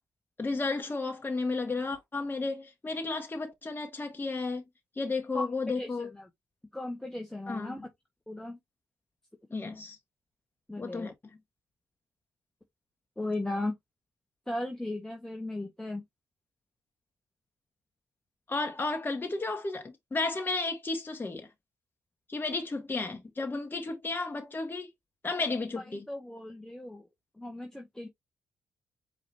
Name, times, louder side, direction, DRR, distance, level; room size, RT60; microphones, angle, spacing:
voice 1, 0.4-4.6 5.0-6.1 7.5-7.8 9.5-10.0 10.8-11.1 18.5-21.5 22.3-24.9 25.2-26.0, left 3 dB, 30° left, 1.3 m, -33 dB
voice 2, 5.7-6.3 6.7-7.9 8.3-8.6 10.7-11.1 13.2-13.8 14.5-16.0 25.8-27.1 27.4-28.1, left 2 dB, 5° left, 1.3 m, -36 dB
4.8 x 3.2 x 2.7 m
supercardioid pair, 55°, 7 cm